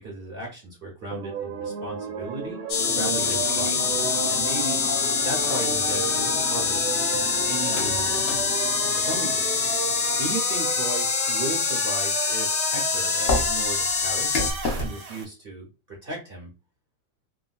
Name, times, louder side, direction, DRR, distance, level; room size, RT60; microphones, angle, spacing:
voice 1, 0.0-2.6 2.9-3.8 4.3-4.8 5.2-6.8 7.1-8.2 9.0-9.6 10.2-14.4 14.8-16.5, right 2 dB, 45° right, -1 dB, 0.8 m, -35 dB
sound 1, 1.1-15.2, right 5 dB, 80° right, 1.4 m, -32 dB
sound 2, 2.7-14.5, left 6 dB, 75° left, 1.2 m, -25 dB
sound 3, 2.7-10.4 13.3-14.9, left 2 dB, 50° left, 0.8 m, -33 dB
3.8 x 2.3 x 2.3 m, 0.30 s
omnidirectional pair, 1.8 m